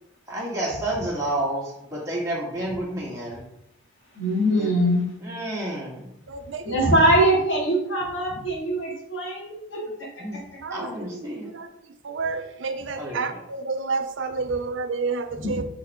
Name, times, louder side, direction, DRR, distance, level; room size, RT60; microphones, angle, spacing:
voice 1, 0.3-3.4 4.6-4.7 5.2-6.0 10.2-10.4 10.7-11.5 12.9-13.4, right 1 dB, 15° right, -5 dB, 1.8 m, -30 dB
voice 2, 4.2-5.1 6.6-9.9 15.3-15.5, right 1 dB, 75° left, -3 dB, 1.9 m, -22 dB
voice 3, 6.3-6.9 10.6-10.9 11.1-11.7 12.0-15.6, right 4 dB, 75° right, 9 dB, 0.5 m, -30 dB
6.5 x 4.1 x 3.5 m, 0.81 s
head